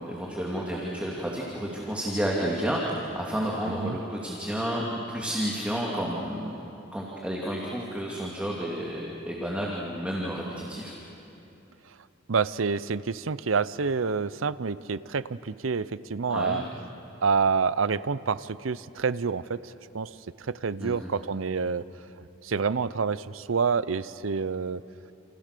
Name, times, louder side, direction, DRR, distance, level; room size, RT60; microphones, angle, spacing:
voice 1, 0.0-6.6 6.9-10.9 16.3-16.6 20.8-21.1, equal, 5° right, -3 dB, 2.6 m, -31 dB
voice 2, 12.3-16.6 17.2-20.1 20.5-21.8 22.4-24.8, right 5 dB, 85° right, 17 dB, 0.6 m, -28 dB
29.0 x 28.5 x 6.8 m, 3.0 s
head